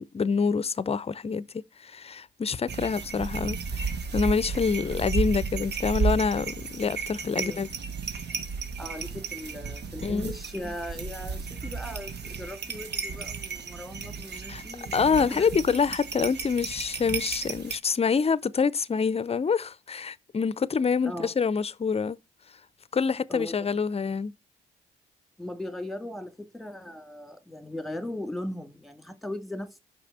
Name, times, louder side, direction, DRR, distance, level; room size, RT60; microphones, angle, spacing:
voice 1, 0.0-1.5 1.8-7.7 10.0-10.3 14.5-14.6 14.9-22.2 22.9-24.3, left 5 dB, 30° left, 0.6 m, -26 dB
sound 1, 2.7-17.8, right 5 dB, 55° right, 1.3 m, -33 dB
voice 2, 7.3-7.7 8.8-15.8 21.0-21.3 23.3-23.6 25.4-29.8, left 1 dB, ahead, 2.0 m, -38 dB
5.8 x 5.0 x 6.5 m
supercardioid pair, 55°, 20 cm